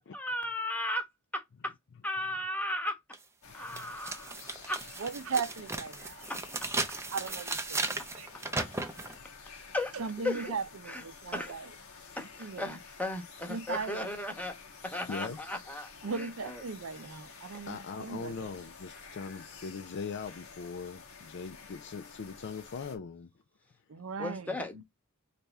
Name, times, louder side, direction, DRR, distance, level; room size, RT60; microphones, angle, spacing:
voice 1, 0.1-1.1 1.3-1.7 2.0-3.0 3.5-4.3 4.7-4.8 6.3-6.4 8.6-8.7 9.7-9.9 10.2-10.5 10.9-11.0 11.3-11.5 12.2-14.5 14.8-15.9 16.2-16.6 24.2-24.8, left 1 dB, 5° left, 1.1 m, -35 dB
sound 1, 3.1-3.2 3.7-9.2, right 3 dB, 10° right, 0.6 m, -36 dB
sound 2, 3.4-23.0, left 5 dB, 85° left, 1.4 m, -51 dB
voice 2, 3.6-4.0 15.1-15.4 17.7-23.3, left 5 dB, 55° left, 0.4 m, -40 dB
voice 3, 4.9-6.3 7.1-8.3 9.9-11.8 12.2-12.8 13.5-14.2 15.3-15.4 16.0-18.6 23.9-24.6, right 5 dB, 70° right, 0.6 m, -38 dB
4.1 x 3.4 x 3.4 m
head